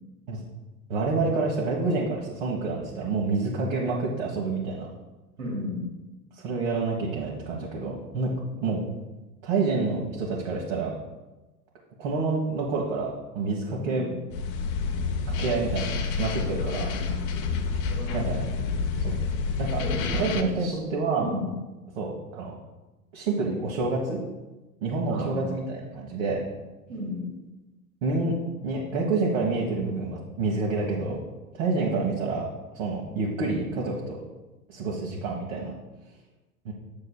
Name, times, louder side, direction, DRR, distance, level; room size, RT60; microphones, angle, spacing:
voice 1, 0.9-4.9 6.4-8.3 8.6-8.8 9.4-10.9 12.0-14.1 15.4-16.9 18.1-18.5 19.0-19.1 19.6-19.8 20.2-21.3 21.9-22.5 23.1-24.2 24.8-26.4 28.0-28.3 28.6-31.2 31.5-32.5 32.7-34.2 34.7-35.7 36.6-36.7, right 3 dB, 55° right, -3 dB, 1.5 m, -28 dB
voice 2, 5.4-5.9 13.8-14.1 16.7-17.3 17.9-18.3 19.8-20.7 21.2-21.5 25.1-25.6 26.9-27.3 31.8-31.9, left 1 dB, 75° right, -2 dB, 2.0 m, -34 dB
sound 1, 14.3-20.4, left 5 dB, 35° left, 0.7 m, -29 dB
8.8 x 6.3 x 2.3 m, 1.1 s
hypercardioid pair, 100°, 44 cm